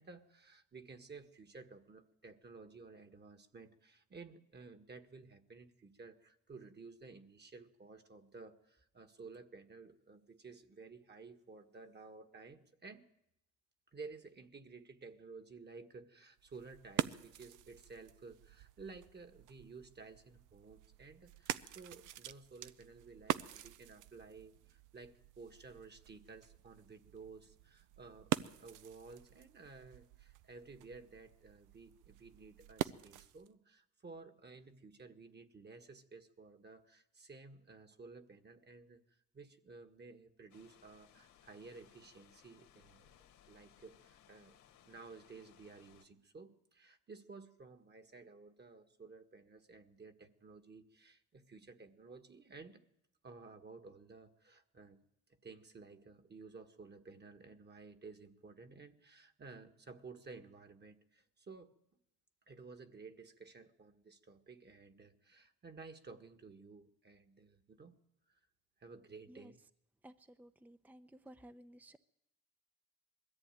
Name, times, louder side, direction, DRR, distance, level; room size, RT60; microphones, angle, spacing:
voice 1, 0.0-13.1 13.9-28.3 28.6-43.1 43.5-44.6 44.8-52.8 53.2-55.0 55.4-61.7 62.5-68.0 68.3-68.4 68.8-69.6, right 4 dB, 35° right, 8 dB, 1.8 m, -54 dB
sound 1, 16.4-33.5, right 13 dB, 85° right, 0.7 m, -45 dB
sound 2, 40.5-46.1, left 10 dB, 80° left, 2.0 m, -65 dB
voice 2, 70.0-72.0, right 1 dB, 5° right, 11 dB, 0.7 m, -56 dB
21.5 x 14.0 x 9.1 m, 0.83 s
cardioid pair, 90°, 30 cm